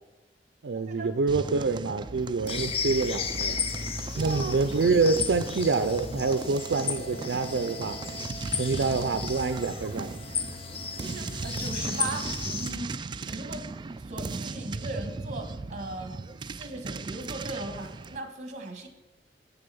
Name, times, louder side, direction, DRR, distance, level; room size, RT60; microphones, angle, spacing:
voice 1, 0.6-3.6 4.2-8.0 8.5-10.2, right 4 dB, 85° right, 9 dB, 0.5 m, -26 dB
sound 1, 1.3-18.2, right 3 dB, 25° right, 0.3 m, -37 dB
sound 2, 2.5-12.7, left 6 dB, 35° left, 0.6 m, -34 dB
voice 2, 4.1-4.6 11.0-13.0 13.3-13.7 14.0-16.2 16.6-18.9, right 2 dB, 45° right, 6 dB, 1.5 m, -38 dB
Wind instrument woodwind instrument, 6.2-12.3, right 4 dB, 20° left, 1.8 m, -49 dB
7.6 x 6.8 x 6.8 m, 1.1 s
head